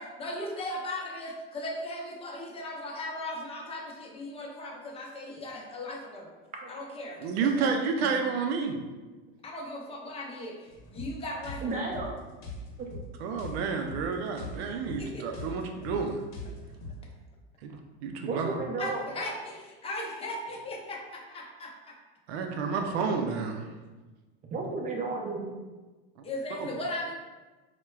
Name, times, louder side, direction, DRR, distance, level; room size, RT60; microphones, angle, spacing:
voice 1, 0.0-6.3 6.7-7.7 9.4-11.8 15.0-15.4 18.8-21.7 26.2-27.1, left 1 dB, 20° left, -1 dB, 0.6 m, -37 dB
voice 2, 7.2-8.8 13.2-16.2 17.6-18.6 22.3-23.7 26.6-26.7, right 5 dB, 85° right, 4 dB, 0.5 m, -30 dB
sound 1, 10.7-17.0, left 1 dB, 60° left, 0.8 m, -42 dB
voice 3, 11.6-12.1 12.8-13.0 18.2-19.0 24.5-25.5, right 3 dB, 25° right, 0 dB, 0.6 m, -33 dB
4.4 x 2.1 x 2.2 m, 1.2 s
supercardioid pair, 115°, 31 cm